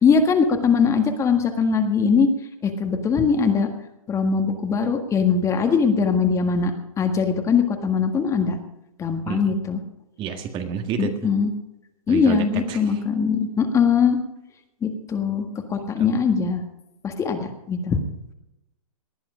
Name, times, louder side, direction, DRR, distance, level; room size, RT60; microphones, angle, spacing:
voice 1, 0.0-2.3 2.6-3.7 4.1-8.6 9.0-9.8 11.0-11.5 12.1-14.2 14.8-16.6 17.0-18.0, left 5 dB, 15° left, 5 dB, 1.6 m, -21 dB
voice 2, 10.2-11.1 12.1-12.8 16.0-16.1, right 7 dB, 25° right, 6 dB, 1.7 m, -29 dB
19.0 x 11.0 x 5.0 m, 0.89 s
hypercardioid pair, 140°, 18 cm